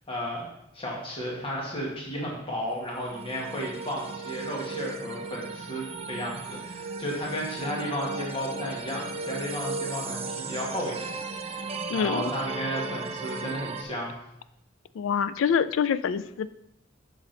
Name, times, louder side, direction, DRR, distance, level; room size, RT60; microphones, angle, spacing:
voice 1, 0.1-0.5 0.7-11.1 11.4-14.1, equal, 30° left, -3 dB, 1.5 m, -33 dB
sound 1, 2.8-13.8, right 3 dB, 30° right, 0.6 m, -36 dB
voice 2, 11.9-12.3 15.0-16.5, left 7 dB, 80° left, 15 dB, 0.3 m, -26 dB
6.1 x 5.9 x 3.8 m, 0.82 s
head